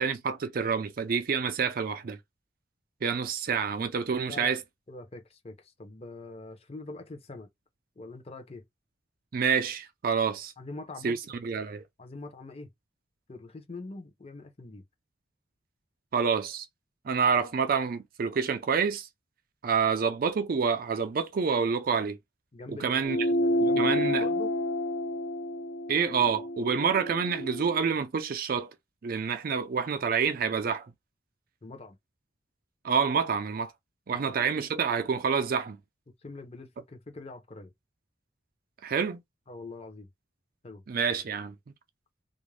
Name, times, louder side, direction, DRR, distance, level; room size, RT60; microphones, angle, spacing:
voice 1, 0.0-2.2 3.0-4.6 9.3-10.5 11.0-11.2 11.4-11.8 16.1-16.7 17.0-19.1 19.6-22.2 22.7-23.2 23.6-24.3 25.9-28.7 29.0-30.9 32.8-33.7 34.1-35.8 38.8-39.2 40.9-41.5, right 6 dB, 50° right, 0.4 m, -28 dB
voice 2, 4.3-4.6 4.9-7.5 8.0-8.6 10.6-11.4 12.0-12.7 13.3-14.8 22.5-24.6 31.6-32.0 36.2-37.7 39.5-40.1 40.6-40.8, left 2 dB, 35° left, 0.7 m, -44 dB
sound 1, 23.0-27.9, left 1 dB, 70° left, 0.6 m, -29 dB
2.4 x 2.1 x 3.2 m
head